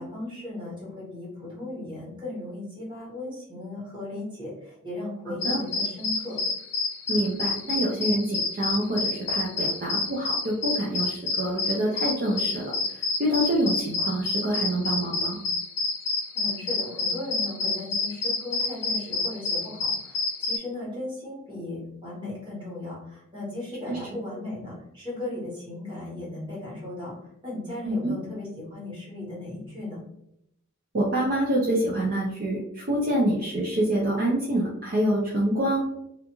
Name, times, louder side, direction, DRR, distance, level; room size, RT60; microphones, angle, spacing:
voice 1, 0.0-6.4 16.3-27.1 27.4-30.0, left 2 dB, 25° right, -6 dB, 1.2 m, -36 dB
voice 2, 5.3-5.6 7.1-15.4 23.9-24.0 27.8-28.1 30.9-35.8, right 1 dB, 45° right, -4 dB, 0.4 m, -26 dB
sound 1, 5.4-20.6, left 3 dB, 55° left, 0.6 m, -28 dB
2.4 x 2.2 x 2.9 m, 0.79 s
head